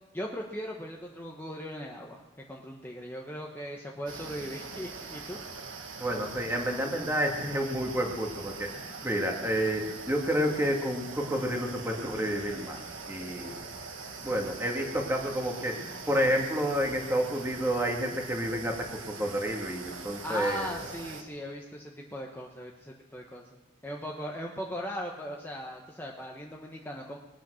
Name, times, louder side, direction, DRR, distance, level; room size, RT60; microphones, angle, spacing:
voice 1, 0.1-2.2 2.5-5.4 20.2-27.2, equal, 10° left, -1 dB, 1.1 m, -38 dB
sound 1, 4.1-21.2, right 4 dB, 90° right, 1.7 m, -42 dB
voice 2, 6.0-13.6 14.2-20.7, equal, 15° right, 1 dB, 2.1 m, -30 dB
21.0 x 9.1 x 6.4 m, 1.1 s
head